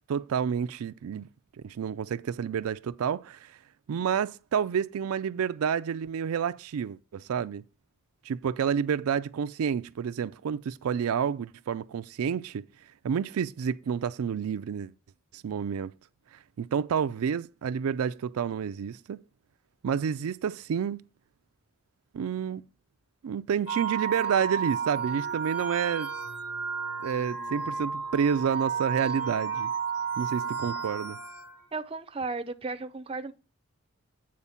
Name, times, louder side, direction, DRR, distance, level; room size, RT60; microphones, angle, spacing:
voice 1, 0.1-1.3 1.6-3.6 3.9-7.6 8.2-12.6 13.0-14.9 15.3-15.9 16.6-19.2 19.8-21.0 22.1-22.6 23.2-26.1 27.0-29.7 30.2-31.2, right 7 dB, 85° right, 0.4 m, -29 dB
sound 1, 23.7-31.6, right 6 dB, 55° left, 1.3 m, -32 dB
voice 2, 31.7-33.3, right 3 dB, 25° right, 0.4 m, -34 dB
8.6 x 4.4 x 5.6 m
head